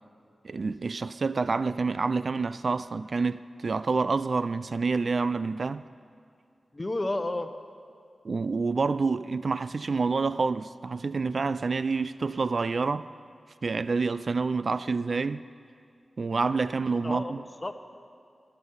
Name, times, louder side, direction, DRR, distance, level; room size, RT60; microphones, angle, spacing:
voice 1, 0.4-5.8 8.2-13.1 13.6-15.4 16.2-17.4, right 4 dB, 60° right, 0.3 m, -28 dB
voice 2, 6.7-7.5 17.0-17.3 17.6-17.8, left 2 dB, 30° left, 0.9 m, -31 dB
21.5 x 8.2 x 5.6 m
cardioid pair, 65°, 0 cm